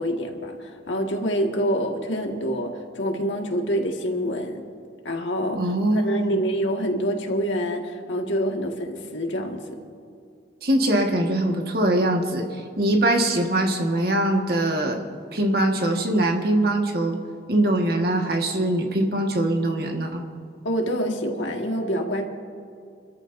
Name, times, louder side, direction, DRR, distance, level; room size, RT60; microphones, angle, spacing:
voice 1, 0.0-4.6 5.0-5.6 5.9-9.8 20.6-22.2, equal, 90° left, 2 dB, 1.8 m, -26 dB
voice 2, 5.5-6.4 10.6-15.0 15.3-17.2 17.5-20.2, right 1 dB, 55° right, 2 dB, 1.6 m, -22 dB
29.0 x 14.0 x 2.6 m, 2.3 s
head